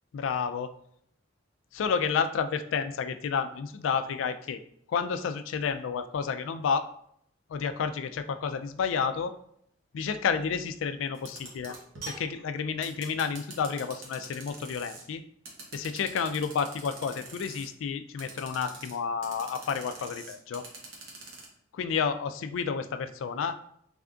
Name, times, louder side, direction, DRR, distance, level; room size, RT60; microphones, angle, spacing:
voice 1, 0.1-0.7 1.7-4.6 4.9-6.9 7.5-9.3 9.9-11.8 12.1-15.2 15.7-20.6 21.7-23.6, left 6 dB, 75° left, 9 dB, 0.3 m, -30 dB
sound 1, 11.1-15.0 15.4-17.7 18.2-19.0 19.2-21.4, right 3 dB, 80° right, 1.0 m, -44 dB
3.4 x 2.3 x 3.7 m, 0.69 s
head